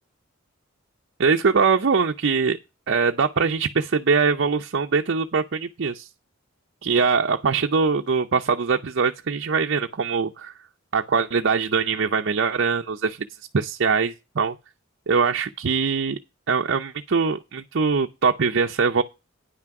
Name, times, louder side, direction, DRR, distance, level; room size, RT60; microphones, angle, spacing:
voice 1, 1.2-2.6 2.9-6.1 6.8-10.5 10.9-13.2 13.5-14.5 15.1-16.2 16.5-19.0, right 5 dB, 60° right, 0.6 m, -22 dB
9.8 x 6.1 x 5.8 m
head